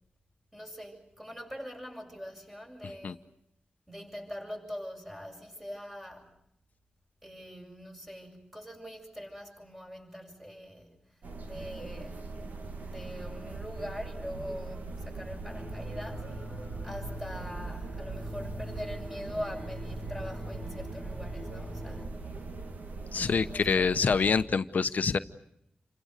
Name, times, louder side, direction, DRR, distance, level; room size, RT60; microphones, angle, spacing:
voice 1, 0.5-3.2 3.9-6.3 7.2-11.1 11.4-12.3 12.8-16.4 16.8-22.1 23.4-23.9, equal, 10° right, 7.5 m, -43 dB
sound 1, 11.2-24.4, right 3 dB, 70° right, 2.6 m, -41 dB
sound 2, 15.5-22.1, left 1 dB, 5° left, 3.7 m, -43 dB
voice 2, 23.1-25.2, left 5 dB, 65° left, 0.9 m, -26 dB
29.0 x 25.5 x 6.6 m
wide cardioid pair, 100°, 3 cm